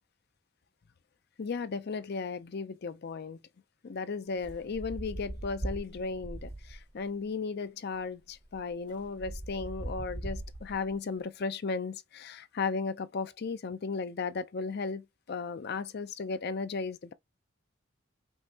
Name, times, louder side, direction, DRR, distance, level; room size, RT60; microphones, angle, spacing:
voice 1, 1.4-3.4 3.8-17.1, left 4 dB, 50° left, 0.5 m, -35 dB
sound 1, 4.4-7.0 7.9-8.0 8.3-11.0, right 1 dB, 25° right, 0.7 m, -40 dB
5.4 x 3.0 x 2.8 m
head